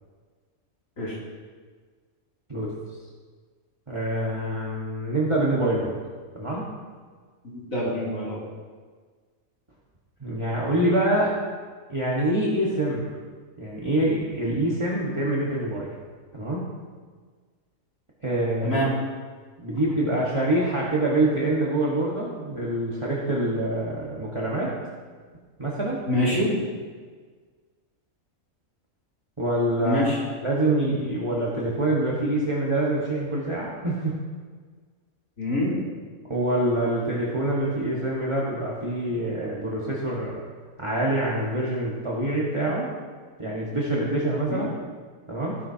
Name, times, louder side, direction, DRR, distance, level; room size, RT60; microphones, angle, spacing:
voice 1, 3.9-5.9 6.3-6.7 10.2-11.3 11.9-13.1 13.6-15.9 16.3-16.7 18.2-18.8 19.6-24.7 25.6-26.0 29.4-30.1 30.4-34.1 36.3-40.4 40.8-42.9 43.4-44.7 45.3-45.6, right 1 dB, 20° right, -6 dB, 1.5 m, -25 dB
voice 2, 7.4-8.4 18.6-18.9 19.7-19.8 26.1-26.6 29.8-30.2 35.4-35.8 44.5-44.7, left 1 dB, 75° left, -6 dB, 3.4 m, -25 dB
15.5 x 10.5 x 2.9 m, 1.5 s
omnidirectional pair, 1.4 m